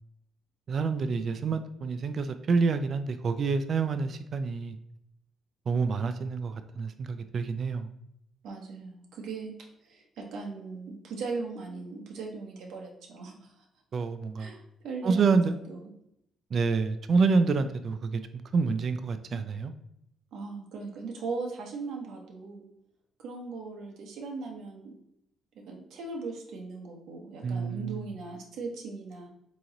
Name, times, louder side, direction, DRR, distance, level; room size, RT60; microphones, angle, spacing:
voice 1, 0.7-4.8 5.7-7.9 13.9-14.5 15.0-15.5 16.5-18.2 18.5-19.7 27.4-28.1, right 4 dB, 50° right, 10 dB, 0.3 m, -27 dB
voice 2, 8.4-9.5 9.8-13.7 14.4-15.8 20.3-22.6 23.2-24.9 25.7-29.3, right 4 dB, 85° right, 0 dB, 0.9 m, -39 dB
3.8 x 3.0 x 3.8 m, 0.77 s
cardioid pair, 90°, 0 cm